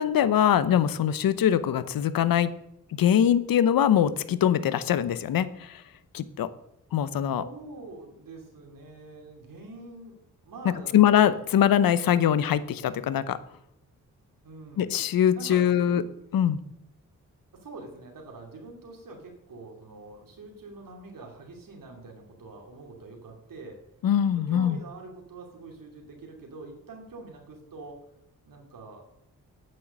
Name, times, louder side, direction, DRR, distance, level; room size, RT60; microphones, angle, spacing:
voice 1, 0.0-2.5 3.0-5.8 6.1-6.5 6.9-7.4 10.9-13.4 14.8-16.0 16.3-16.6 24.0-24.8, left 10 dB, 70° left, 16 dB, 0.8 m, -22 dB
voice 2, 7.4-11.0 14.4-14.9 15.3-16.1 17.5-23.8 24.3-28.0 28.4-29.0, right 3 dB, 65° right, 1 dB, 2.7 m, -45 dB
8.8 x 7.6 x 6.5 m, 0.84 s
supercardioid pair, 50°, 36 cm